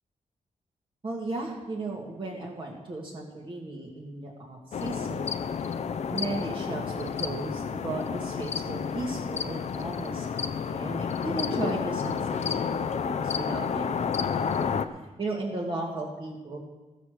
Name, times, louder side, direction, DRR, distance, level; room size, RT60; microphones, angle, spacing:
voice 1, 1.0-5.3 6.1-16.6, right 2 dB, 35° right, -3 dB, 1.7 m, -36 dB
sound 1, 4.7-14.9, left 6 dB, 50° left, 0.5 m, -30 dB
15.5 x 6.6 x 6.2 m, 1.1 s
wide cardioid pair, 170°, 14 cm